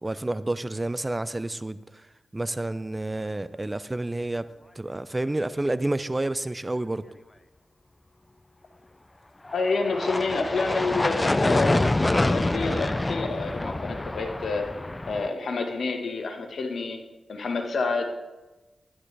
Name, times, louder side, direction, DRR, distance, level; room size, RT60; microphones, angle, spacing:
voice 1, 0.0-1.8 2.3-4.5 4.8-7.0, right 2 dB, 25° right, 0.5 m, -29 dB
sound 1, 9.4-15.3, left 2 dB, 25° left, 0.4 m, -26 dB
voice 2, 9.5-14.7 15.1-17.0 17.3-18.1, left 3 dB, 75° left, 1.5 m, -28 dB
12.5 x 11.0 x 3.4 m
cardioid pair, 50°, 0 cm